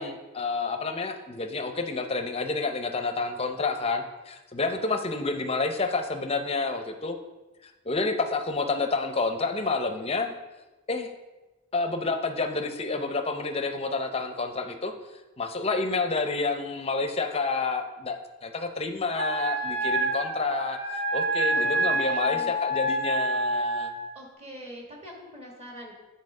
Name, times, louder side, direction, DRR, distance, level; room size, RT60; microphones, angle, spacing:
voice 1, 0.0-7.2 7.6-10.3 10.9-11.1 11.7-14.9 15.4-23.9, left 3 dB, 25° left, 6 dB, 0.6 m, -29 dB
Wind instrument woodwind instrument, 19.2-24.0, right 1 dB, 80° right, 1.3 m, -27 dB
voice 2, 21.5-22.6 24.1-25.9, right 1 dB, 30° right, 0 dB, 1.5 m, -43 dB
8.6 x 4.1 x 5.4 m, 1.1 s
head